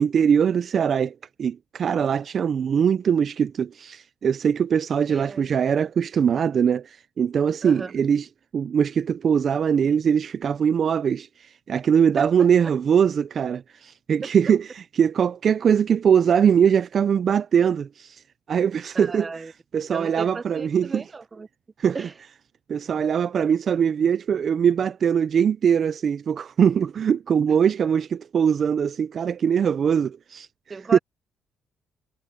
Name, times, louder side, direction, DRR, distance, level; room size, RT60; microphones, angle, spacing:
voice 1, 0.0-8.3 8.5-19.4 19.7-21.0 21.8-22.1 22.7-30.5 30.9-31.0, right 7 dB, 55° right, 0.5 m, -22 dB
voice 2, 5.1-5.4 7.6-7.9 12.2-12.5 18.9-19.5 19.9-21.5 21.9-22.1 30.7-31.0, right 4 dB, 30° right, 0.8 m, -35 dB
cardioid pair, 90°, 0 cm